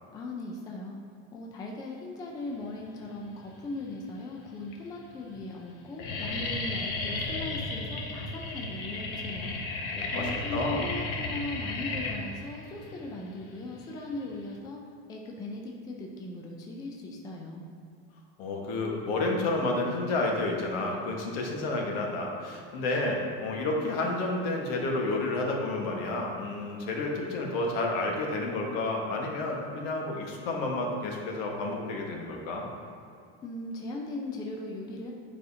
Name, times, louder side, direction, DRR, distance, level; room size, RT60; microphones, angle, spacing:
voice 1, 0.1-1.0 1.3-9.6 10.1-14.8 15.1-17.6 33.4-35.1, left 2 dB, 15° left, 0 dB, 0.4 m, -38 dB
sound 1, 3.4-4.0 4.6-4.7 5.0-5.4 5.6-14.6, left 3 dB, 50° left, 0.9 m, -34 dB
voice 2, 9.9-10.8 18.4-32.7, left 2 dB, 65° left, 0 dB, 1.4 m, -30 dB
9.3 x 5.0 x 2.7 m, 2.5 s
supercardioid pair, 160°, 31 cm